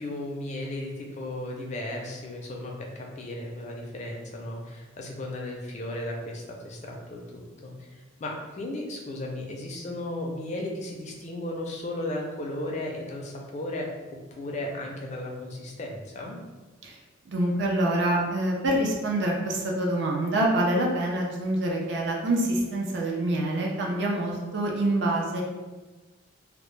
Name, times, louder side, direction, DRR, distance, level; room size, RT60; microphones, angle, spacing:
voice 1, 0.0-13.9 14.3-16.4, left 1 dB, 35° left, 0 dB, 0.4 m, -35 dB
voice 2, 17.3-25.4, right 1 dB, 60° right, -1 dB, 0.4 m, -26 dB
2.1 x 2.0 x 3.1 m, 1.2 s
head